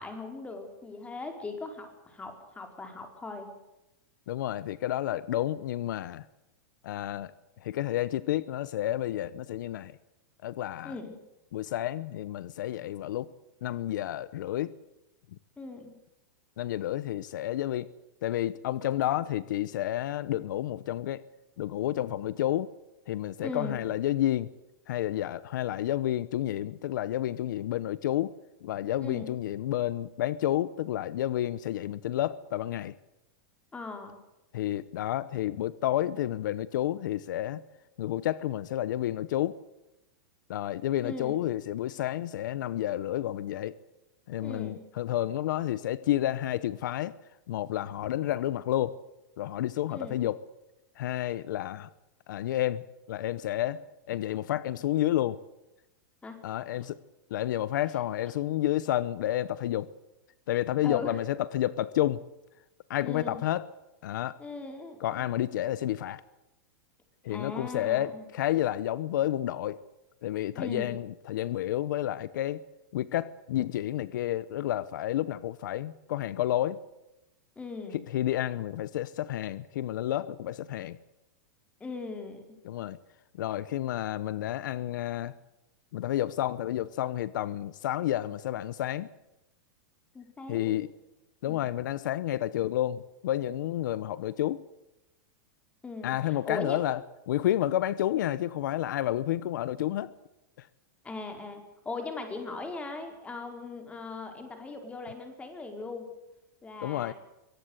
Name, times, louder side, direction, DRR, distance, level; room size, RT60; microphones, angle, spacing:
voice 1, 0.0-3.5 10.8-11.2 15.6-16.0 23.4-23.8 29.0-29.3 33.7-34.1 41.0-41.4 44.4-44.9 49.9-50.3 56.2-56.4 56.7-56.9 60.8-61.2 63.0-63.4 64.4-65.3 67.3-68.2 70.5-71.0 77.6-78.0 81.8-82.6 90.1-90.7 95.8-96.8 101.0-106.1 106.6-107.1, left 3 dB, 10° left, 5 dB, 4.7 m, -39 dB
voice 2, 4.3-6.2 6.8-7.3 7.6-9.9 10.4-10.9 11.5-13.3 13.6-14.7 16.6-17.9 18.2-21.2 21.6-22.7 23.1-24.5 24.9-28.3 28.6-32.9 34.5-37.6 38.0-39.6 40.5-43.8 44.3-47.2 47.5-49.0 49.4-50.4 51.0-51.9 52.3-52.8 53.1-55.4 56.4-57.0 57.3-59.9 60.5-62.2 62.9-63.7 64.0-64.4 65.0-66.2 67.2-69.8 70.2-72.6 72.9-76.8 77.9-81.0 82.6-83.0 83.4-85.3 85.9-89.1 90.5-90.9 91.4-94.6 96.0-97.0 97.3-100.1 100.6-100.7 106.8-107.1, left 13 dB, 75° left, 17 dB, 1.0 m, -30 dB
23.5 x 18.5 x 8.2 m, 0.93 s
supercardioid pair, 145°, 10 cm